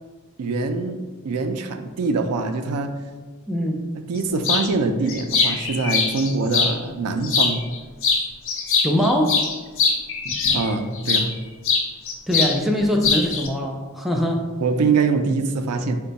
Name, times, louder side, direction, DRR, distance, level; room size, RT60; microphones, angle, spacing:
voice 1, 0.4-1.0 1.2-2.9 4.1-7.6 10.5-11.3 14.6-16.0, right 4 dB, 90° right, 7 dB, 0.4 m, -23 dB
voice 2, 3.5-3.8 8.8-9.4 12.3-14.4, equal, ahead, 0 dB, 0.3 m, -22 dB
sound 1, 4.4-4.7 5.1-6.7 7.2-7.8 8.0-11.3 11.6-12.6 12.8-13.5, left 5 dB, 60° left, 0.6 m, -22 dB
4.5 x 2.2 x 3.9 m, 1.3 s
head